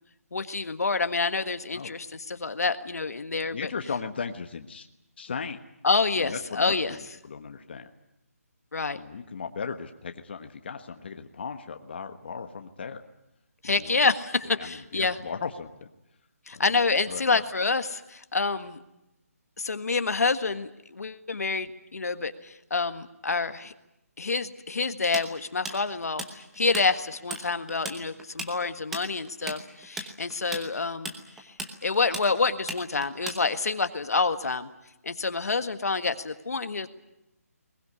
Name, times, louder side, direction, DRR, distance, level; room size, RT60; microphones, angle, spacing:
voice 1, 0.3-3.7 5.8-6.9 8.7-9.0 13.6-15.2 16.5-18.8 19.6-23.7 24.2-31.1 31.8-34.7 35.0-36.9, left 4 dB, 75° left, 9 dB, 1.7 m, -27 dB
voice 2, 3.5-4.9 5.2-5.6 6.2-7.9 8.9-13.0 13.6-14.0 14.6-15.9 16.5-16.6 17.1-17.4, left 5 dB, 40° left, 6 dB, 1.3 m, -37 dB
Tools, 25.1-26.9 27.1-27.4 27.7-33.8, right 2 dB, 5° right, 1.0 m, -36 dB
21.5 x 20.0 x 9.7 m, 0.89 s
hypercardioid pair, 175°, 9 cm